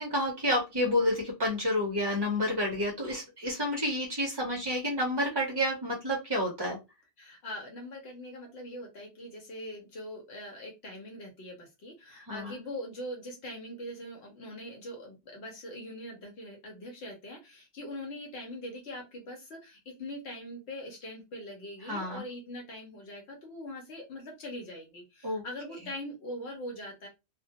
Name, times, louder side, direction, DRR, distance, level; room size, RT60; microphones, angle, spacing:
voice 1, 0.0-6.8 12.3-12.6 21.8-22.2 25.2-25.4, left 1 dB, 35° right, -1 dB, 0.4 m, -29 dB
voice 2, 7.2-27.1, left 1 dB, 75° left, 1 dB, 1.0 m, -42 dB
2.2 x 2.1 x 2.7 m, 0.24 s
omnidirectional pair, 1.1 m